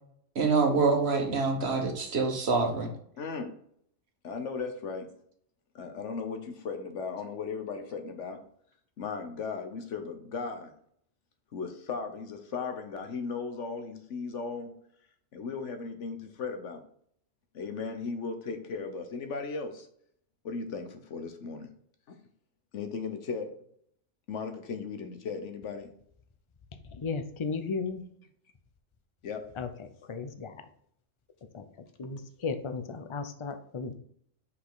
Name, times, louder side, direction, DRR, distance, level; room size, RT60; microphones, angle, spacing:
voice 1, 0.3-2.9, right 4 dB, 55° right, 3 dB, 1.6 m, -26 dB
voice 2, 3.2-3.5 4.2-5.1 5.7-8.4 9.0-10.7 11.5-14.7 15.3-16.8 17.5-19.9 20.4-21.7 22.1-22.2 22.7-23.5 24.3-25.9 29.2-29.4, left 5 dB, 70° left, 6 dB, 1.3 m, -36 dB
voice 3, 27.0-28.0 29.6-29.7 30.1-30.5 31.5-31.6 32.0-33.9, left 4 dB, 35° left, 8 dB, 0.5 m, -34 dB
5.7 x 5.2 x 4.0 m, 0.65 s
omnidirectional pair, 1.3 m